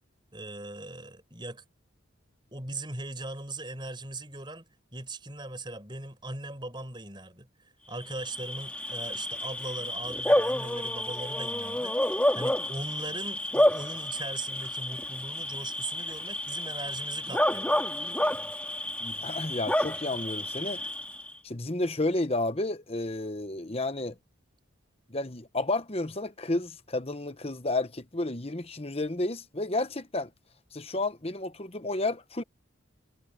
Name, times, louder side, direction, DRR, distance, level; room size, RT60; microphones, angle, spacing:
voice 1, 0.3-1.6 2.5-17.8, right 2 dB, 20° right, 6.5 m, -39 dB
Bark / Cricket, 8.0-21.3, left 1 dB, 5° left, 2.0 m, -30 dB
voice 2, 19.0-20.8 21.4-24.1 25.1-30.3 30.7-32.4, left 2 dB, 30° left, 1.1 m, -31 dB
head